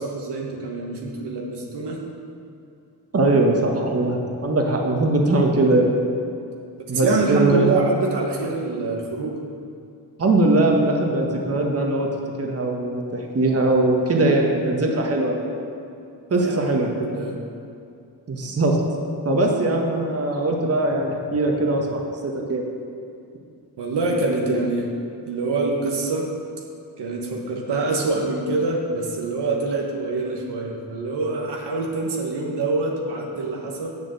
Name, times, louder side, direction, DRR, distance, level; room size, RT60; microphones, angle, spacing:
voice 1, 0.0-2.0 6.9-9.4 16.3-17.4 23.8-24.9 25.3-26.3 27.0-33.9, right 3 dB, 75° right, 0 dB, 1.3 m, -25 dB
voice 2, 3.1-5.9 6.9-7.7 10.2-12.1 12.4-15.4 16.3-16.9 18.3-18.8 19.2-22.6, right 2 dB, 35° right, 0 dB, 1.4 m, -21 dB
7.2 x 6.8 x 6.9 m, 2.5 s
cardioid pair, 80°, 41 cm